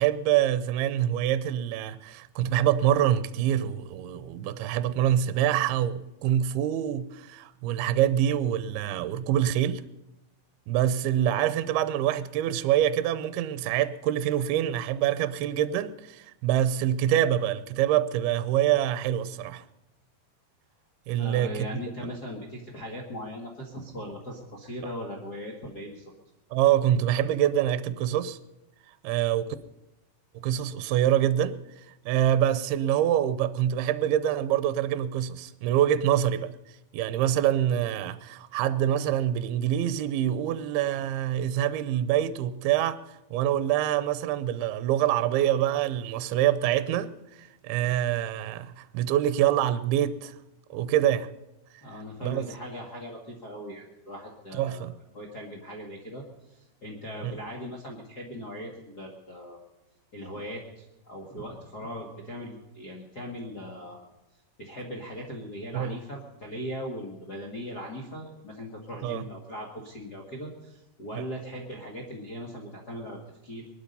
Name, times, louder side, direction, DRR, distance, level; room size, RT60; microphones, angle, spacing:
voice 1, 0.0-9.8 10.7-19.6 21.1-21.8 26.5-28.4 29.0-29.5 30.3-31.6 32.1-36.5 36.9-43.0 43.3-47.1 47.4-50.4 50.7-51.3 52.2-52.5 54.5-54.9 57.2-57.4 65.7-66.0 69.0-69.2, right 11 dB, 80° right, 2.4 m, -25 dB
voice 2, 21.2-26.0 51.8-54.9 55.1-59.6 60.1-64.0 64.6-73.7, equal, 55° left, 1.0 m, -39 dB
22.0 x 12.0 x 5.4 m
omnidirectional pair, 4.8 m